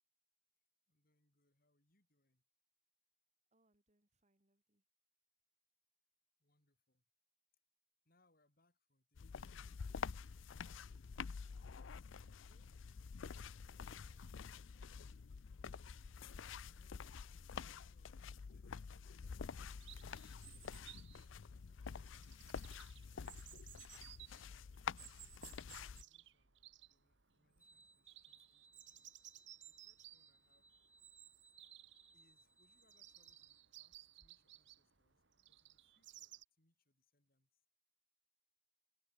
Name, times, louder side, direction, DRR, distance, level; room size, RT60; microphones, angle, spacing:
voice 1, 0.9-2.4 6.4-7.0 8.0-11.3 14.1-14.4 16.6-17.3 17.8-19.1 19.6-20.7 21.3-22.4 23.0-23.6 24.0-25.0 25.8-26.6 26.9-29.2 29.6-30.7 32.1-37.6, left 2 dB, 50° left, 7.2 m, -81 dB
voice 2, 3.5-4.8 12.2-12.6 13.5-14.3, right 2 dB, 35° right, 3.0 m, -80 dB
sound 1, 9.2-26.0, left 6 dB, 75° left, 0.5 m, -49 dB
Chirp tweet, 19.8-36.4, right 14 dB, 65° right, 2.1 m, -60 dB
sound 2, 27.6-33.6, right 3 dB, 10° right, 1.2 m, -68 dB
head